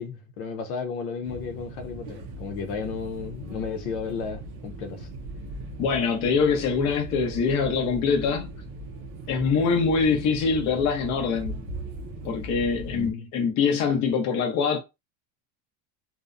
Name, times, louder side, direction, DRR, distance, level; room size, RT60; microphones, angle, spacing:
voice 1, 0.0-5.1 12.9-13.3, left 5 dB, 85° left, 0.7 m, -33 dB
sound 1, 1.2-13.1, right 2 dB, 35° right, 0.4 m, -39 dB
voice 2, 5.8-8.5 9.3-11.6 12.2-14.8, left 5 dB, 40° left, 0.7 m, -24 dB
2.7 x 2.0 x 2.3 m
cardioid pair, 175°, 44 cm